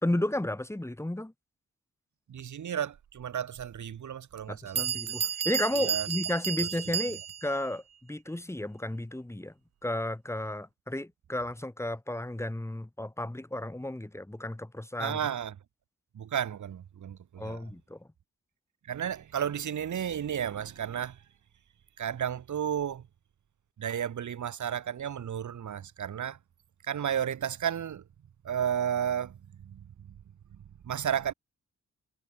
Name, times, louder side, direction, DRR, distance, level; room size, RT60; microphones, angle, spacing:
voice 1, 0.0-1.3 4.5-9.5 9.8-15.2 17.4-18.1, left 1 dB, 10° left, 4.2 m, -33 dB
voice 2, 2.3-5.0 5.8-6.1 6.6-6.7 15.0-15.5 16.1-17.6 18.9-21.2 22.0-23.1 23.8-26.4 26.8-28.0 28.4-30.2 30.6-31.3, right 9 dB, 75° right, 2.5 m, -33 dB
Bell, 3.6-3.7 4.4-4.5 4.8-7.6, right 9 dB, 60° right, 1.1 m, -32 dB
wide cardioid pair, 130°, 30 cm